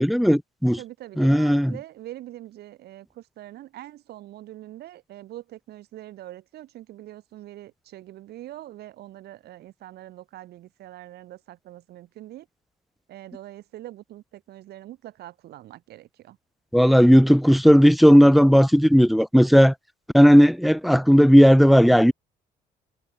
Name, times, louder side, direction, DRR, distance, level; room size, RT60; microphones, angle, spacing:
voice 1, 0.0-0.8 1.2-1.7 16.7-19.7 20.1-22.1, equal, ahead, 0.7 m, -15 dB
voice 2, 0.8-12.5 13.1-16.4, right 14 dB, 70° right, 5.2 m, -43 dB
cardioid pair, 110°, 17 cm